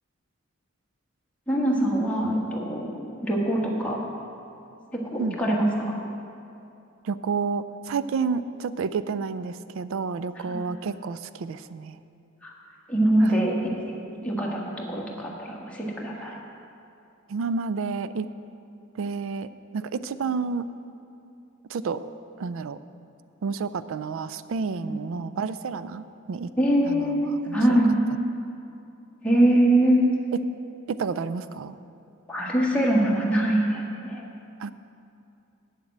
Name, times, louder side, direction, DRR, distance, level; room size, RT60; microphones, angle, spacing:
voice 1, 1.5-4.0 4.9-6.0 10.4-10.6 12.4-12.5 12.9-13.5 13.8-16.4 24.8-24.9 26.6-28.0 29.2-30.0 32.3-34.2, right 1 dB, 5° left, -4 dB, 1.4 m, -23 dB
voice 2, 7.0-12.0 13.2-13.5 17.3-18.3 19.0-19.5 19.7-20.7 21.7-22.1 22.4-22.8 23.4-26.5 26.9-27.8 30.3-30.4 30.9-31.8 34.6-34.7, right 5 dB, 65° right, 14 dB, 0.4 m, -30 dB
7.5 x 7.2 x 8.0 m, 2.6 s
head